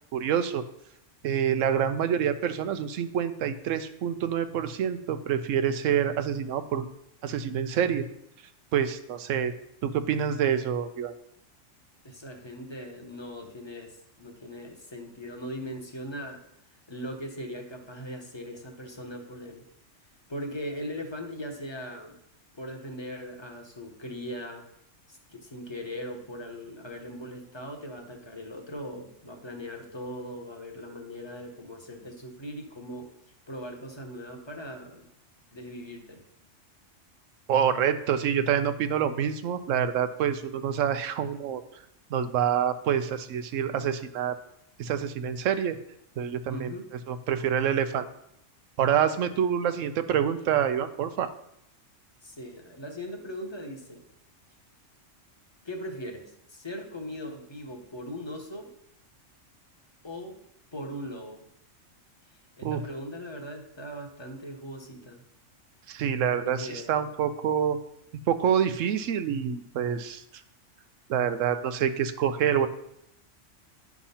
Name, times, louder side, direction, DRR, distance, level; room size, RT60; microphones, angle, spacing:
voice 1, 0.1-0.6 1.2-6.9 7.2-8.0 8.7-9.5 9.8-11.1 37.5-41.6 42.1-44.4 44.8-45.8 46.2-46.7 47.1-48.1 48.8-51.3 62.6-62.8 65.9-67.8 68.3-70.2 71.1-72.7, right 8 dB, 85° right, 10 dB, 1.0 m, -27 dB
voice 2, 12.0-16.4 16.9-19.6 20.3-22.2 22.5-24.7 25.1-33.1 33.5-35.1 35.5-36.2 46.5-46.9 52.2-54.1 55.6-58.7 60.0-60.4 60.7-61.4 62.6-65.2 66.3-67.0, equal, 25° left, 1 dB, 1.0 m, -39 dB
10.0 x 3.6 x 5.6 m, 0.77 s
omnidirectional pair, 1.3 m